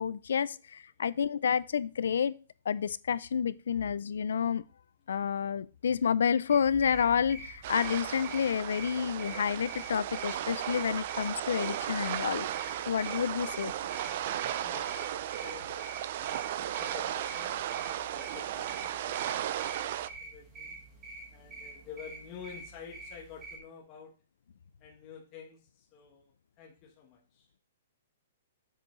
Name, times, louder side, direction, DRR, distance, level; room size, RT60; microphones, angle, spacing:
voice 1, 0.0-2.3 2.7-4.6 5.1-12.5 12.9-13.7, left 7 dB, 80° left, 0.4 m, -29 dB
sound 1, 6.5-23.6, right 3 dB, 10° right, 1.5 m, -47 dB
sound 2, 7.6-20.1, right 11 dB, 35° right, 0.4 m, -35 dB
voice 2, 14.5-17.6 18.0-20.8 21.3-24.1 24.8-27.5, left 7 dB, 20° left, 1.1 m, -50 dB
7.3 x 7.1 x 3.1 m
hypercardioid pair, 180°, 0 cm